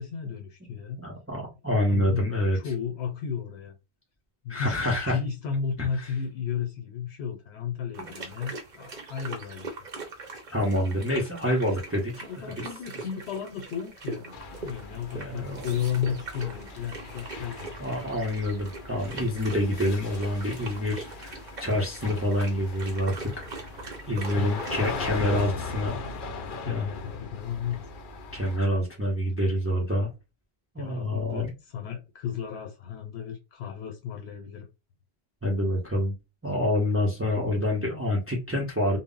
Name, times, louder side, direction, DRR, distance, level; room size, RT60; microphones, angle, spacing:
voice 1, 0.0-1.0 1.9-3.8 4.4-9.7 12.2-18.1 24.1-24.9 25.2-25.4 26.6-27.8 30.8-31.5 31.7-34.7, left 7 dB, 80° left, 0.9 m, -34 dB
voice 2, 1.0-2.6 4.5-5.2 5.8-6.1 10.5-12.2 15.1-15.7 16.0-16.1 17.8-23.6 24.1-26.0 26.6-26.9 28.3-30.1 30.7-31.5 35.4-36.1 36.4-39.0, left 1 dB, 15° right, 0.5 m, -27 dB
sound 1, 7.9-25.0, right 3 dB, 50° right, 0.7 m, -42 dB
sound 2, 14.3-28.6, left 3 dB, 60° left, 0.6 m, -39 dB
2.0 x 2.0 x 3.7 m
omnidirectional pair, 1.1 m